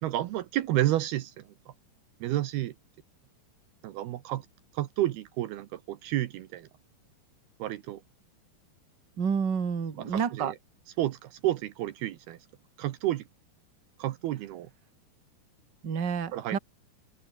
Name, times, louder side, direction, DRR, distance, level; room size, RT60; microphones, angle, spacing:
voice 1, 0.0-1.5 2.2-2.8 3.8-4.5 4.7-6.7 7.6-8.0 10.1-10.5 11.0-12.4 12.8-13.2 14.0-14.7 16.3-16.6, right 14 dB, 75° right, 2.8 m, -30 dB
voice 2, 9.2-10.5 15.8-16.6, right 6 dB, 35° right, 2.2 m, -29 dB
open air
omnidirectional pair, 4.9 m